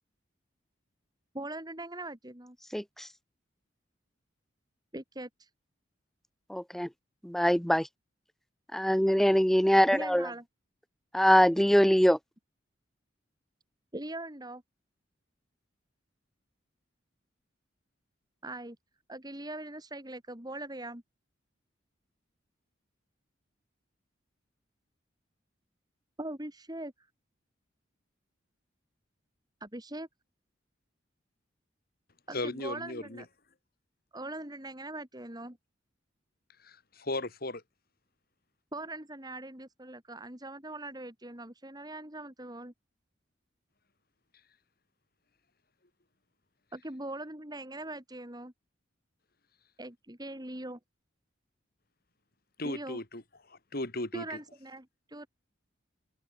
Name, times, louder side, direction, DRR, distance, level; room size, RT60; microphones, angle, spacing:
voice 1, 1.3-2.6 4.9-5.5 9.9-10.4 13.9-14.6 18.4-18.8 19.1-21.0 26.2-27.1 29.6-30.1 32.3-33.3 34.1-35.6 38.7-42.7 46.7-48.5 49.8-50.8 52.6-53.0 54.1-55.3, right 1 dB, 20° right, 3.5 m, -41 dB
voice 2, 2.7-3.1 6.5-6.9 7.2-7.9 8.7-10.3 11.1-12.2, equal, ahead, 0.5 m, -23 dB
voice 3, 32.3-33.2 36.6-37.6 52.6-53.2 53.5-54.4, left 2 dB, 55° left, 3.2 m, -36 dB
open air
head